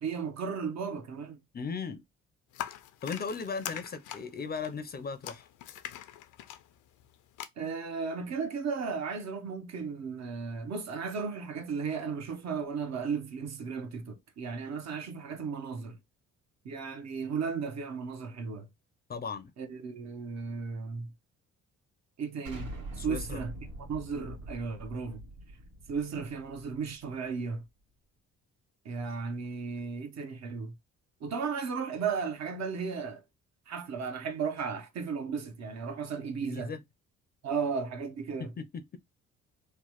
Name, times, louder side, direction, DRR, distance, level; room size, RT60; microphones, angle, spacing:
voice 1, 0.0-1.4 7.6-16.0 16.6-18.7 19.6-21.1 22.2-25.2 25.9-27.6 28.8-30.7 31.2-33.2 33.7-36.7 37.4-38.5, right 5 dB, 60° right, 0.8 m, -35 dB
voice 2, 1.5-2.0 3.0-5.5 19.1-19.5 23.0-23.4 36.4-36.8 38.4-38.8, left 5 dB, 30° left, 0.4 m, -37 dB
sound 1, 2.5-7.5, left 12 dB, 90° left, 0.5 m, -43 dB
Explosion, 22.4-27.3, right 1 dB, 85° right, 1.3 m, -44 dB
3.1 x 2.1 x 2.9 m
cardioid pair, 90°, 30 cm